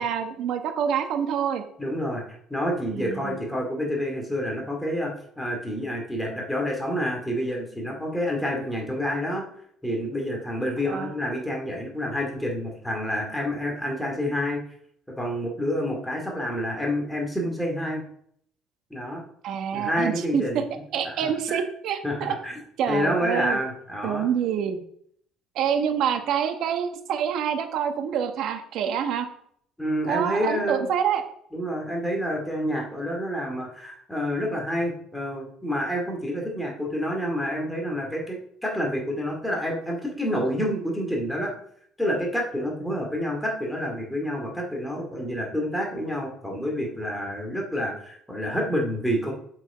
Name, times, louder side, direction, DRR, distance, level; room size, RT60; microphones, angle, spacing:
voice 1, 0.0-1.6 2.9-3.4 10.8-11.1 19.4-20.6 20.9-22.3 22.8-23.6 24.0-24.8 25.5-29.3 30.0-31.2, right 8 dB, 60° right, 7 dB, 1.3 m, -26 dB
voice 2, 1.8-2.2 2.5-9.5 9.8-14.6 15.2-18.0 18.9-19.2 19.7-20.6 21.0-21.7 22.0-22.5 22.9-24.3 29.8-30.9 31.5-41.5 42.0-49.3, equal, 5° left, 0 dB, 2.3 m, -28 dB
7.5 x 6.4 x 5.0 m, 0.64 s
cardioid pair, 130°, 0 cm